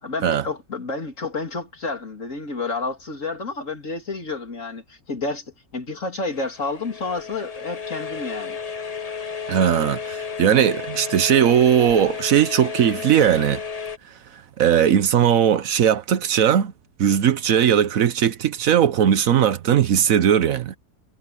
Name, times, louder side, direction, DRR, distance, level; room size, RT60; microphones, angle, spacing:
voice 1, 0.0-5.4 5.7-8.6, left 3 dB, 55° left, 3.3 m, -30 dB
sound 1, 6.3-14.0, left 6 dB, 30° left, 0.9 m, -33 dB
voice 2, 9.5-13.6 14.6-16.7 17.0-20.8, right 9 dB, 65° right, 1.2 m, -18 dB
omnidirectional pair, 1.6 m